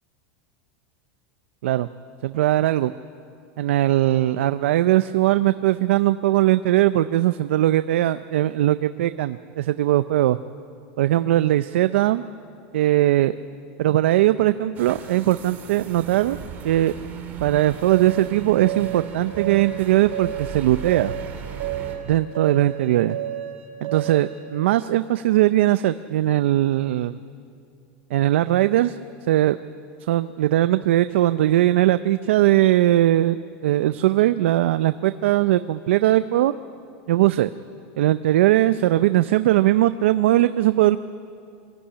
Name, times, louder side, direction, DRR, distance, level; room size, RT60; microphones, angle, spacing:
voice 1, 2.2-2.9 3.6-10.4 11.0-12.2 12.7-13.4 13.8-16.4 16.6-16.9 17.4-21.1 22.1-23.2 23.8-27.2 28.1-29.0 29.3-29.6 30.1-33.4 33.6-36.5 37.1-37.5 38.0-41.0, right 14 dB, 85° right, 12 dB, 0.5 m, -20 dB
sound 1, 14.7-22.0, right 7 dB, 30° right, 2.5 m, -37 dB
sound 2, 17.9-24.4, right 12 dB, 55° right, 3.8 m, -31 dB
23.5 x 14.5 x 9.9 m, 2.5 s
supercardioid pair, 170°, 6 cm